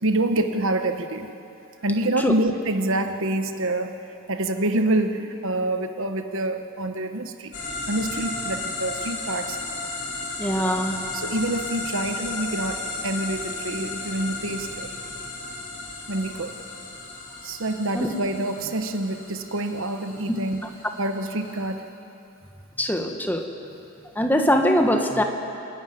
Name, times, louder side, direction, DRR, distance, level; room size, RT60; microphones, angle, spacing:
voice 1, 0.0-1.3 1.8-4.0 4.3-7.5 7.9-9.6 11.1-14.9 16.1-16.5 17.4-20.6 21.0-21.8, right 1 dB, 60° right, 7 dB, 1.2 m, -26 dB
sound 1, 7.5-21.7, left 3 dB, 55° left, 4.0 m, -34 dB
voice 2, 10.4-11.0 17.9-18.1 20.3-20.4 22.8-23.5 24.1-25.2, equal, 10° left, 4 dB, 1.3 m, -22 dB
28.5 x 12.0 x 9.4 m, 2.8 s
head